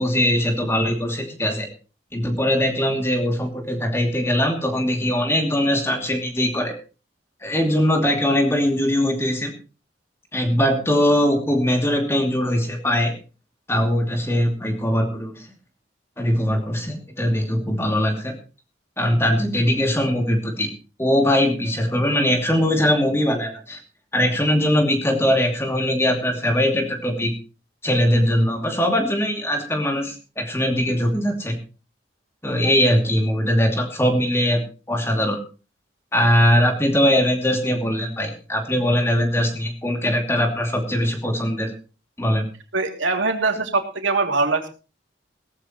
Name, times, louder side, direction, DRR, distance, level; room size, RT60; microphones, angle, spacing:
voice 1, 0.0-1.7 2.1-6.7 7.4-9.5 10.3-13.1 13.7-15.5 16.2-18.3 19.0-20.7 21.0-23.8 24.1-27.3 27.8-31.6 32.4-34.6 34.9-35.4 36.1-41.7 42.2-42.4, equal, 15° left, 3 dB, 2.7 m, -21 dB
voice 2, 42.7-44.7, right 3 dB, 85° right, 3 dB, 2.9 m, -22 dB
18.0 x 14.0 x 3.1 m, 0.34 s
head